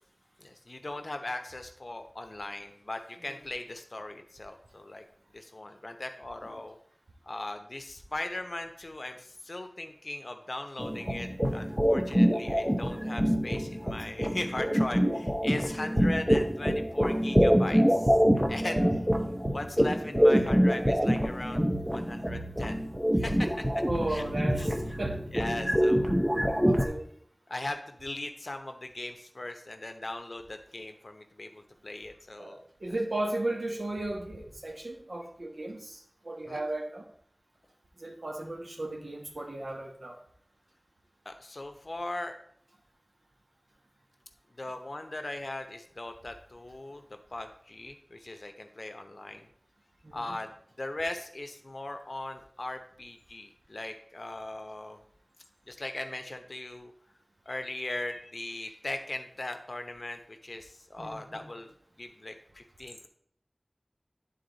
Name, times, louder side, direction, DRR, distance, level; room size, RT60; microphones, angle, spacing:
voice 1, 0.4-5.0 5.3-6.8 7.3-18.2 18.5-18.8 19.5-22.8 23.1-23.5 24.1-24.2 24.6-24.7 25.3-26.1 27.5-32.6 36.5-36.6 41.2-42.3 44.6-47.0 47.3-49.5 50.1-55.0 55.7-56.9 57.5-61.7 62.0-63.1, left 2 dB, 65° left, 6 dB, 0.8 m, -39 dB
sound 1, 10.8-26.9, equal, 5° right, 0.9 m, -26 dB
voice 2, 18.6-18.9 23.9-25.2 26.3-27.1 32.4-37.1 38.0-40.2 50.0-50.4 61.0-61.5, right 1 dB, 80° right, 1 dB, 1.2 m, -35 dB
9.2 x 4.0 x 3.9 m, 0.65 s
wide cardioid pair, 50°, 0 cm